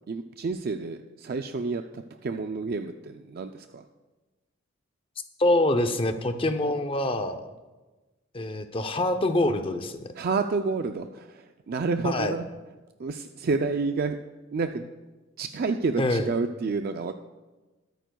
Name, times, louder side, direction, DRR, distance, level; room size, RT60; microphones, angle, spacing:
voice 1, 0.1-3.9 10.1-12.5 13.0-14.2 14.5-14.9 15.4-17.1, right 4 dB, 50° right, 7 dB, 0.4 m, -29 dB
voice 2, 5.4-7.4 8.3-10.0 12.0-12.3 16.0-16.2, left 1 dB, 25° left, 8 dB, 0.6 m, -25 dB
22.0 x 9.1 x 2.3 m, 1.2 s
head